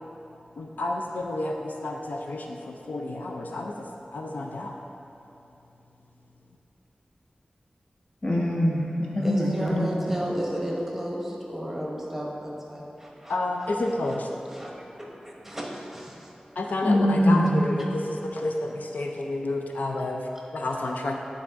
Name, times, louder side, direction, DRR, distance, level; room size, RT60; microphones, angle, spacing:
voice 1, 0.6-4.8 13.3-14.3 16.6-21.2, left 2 dB, 85° left, 2 dB, 0.4 m, -30 dB
voice 2, 8.2-9.9 16.8-17.6, equal, 40° left, -3 dB, 1.2 m, -23 dB
voice 3, 9.2-13.3 14.5-16.3, equal, 10° right, -3 dB, 1.1 m, -33 dB
10.0 x 4.1 x 3.6 m, 2.9 s
wide cardioid pair, 65°, 3 cm